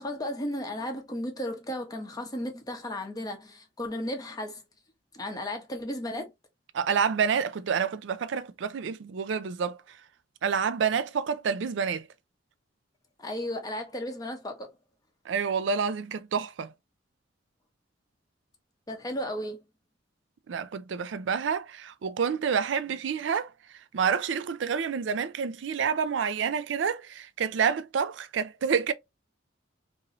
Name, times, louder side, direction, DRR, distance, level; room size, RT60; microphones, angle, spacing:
voice 1, 0.0-4.6 5.1-6.3 13.2-14.7 18.9-19.6, left 1 dB, 20° left, 0.7 m, -34 dB
voice 2, 6.7-9.8 10.4-12.1 15.3-16.7 20.5-23.5 23.9-28.9, right 6 dB, 70° right, 0.4 m, -28 dB
3.0 x 2.6 x 2.5 m
head